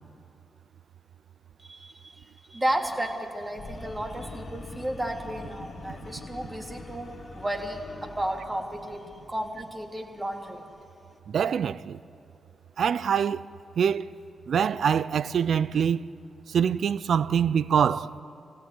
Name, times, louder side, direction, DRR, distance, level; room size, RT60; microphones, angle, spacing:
voice 1, 1.6-10.7, right 1 dB, 25° right, 3.6 m, -33 dB
sound 1, 3.6-9.8, left 3 dB, 65° left, 1.6 m, -44 dB
voice 2, 11.3-12.0 12.8-13.5 13.8-14.0 14.5-16.0 16.5-18.1, right 7 dB, 70° right, 0.5 m, -24 dB
24.0 x 17.0 x 9.8 m
supercardioid pair, 45°, 0 cm